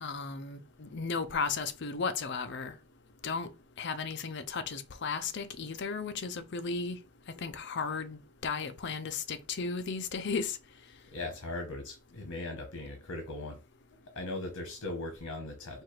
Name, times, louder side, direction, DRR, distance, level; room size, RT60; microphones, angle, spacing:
voice 1, 0.0-2.7 3.2-3.5 3.8-7.0 7.4-10.6, left 5 dB, 55° left, 0.5 m, -35 dB
voice 2, 11.1-13.6 14.1-15.8, left 2 dB, 90° left, 1.1 m, -39 dB
4.5 x 2.4 x 4.6 m
head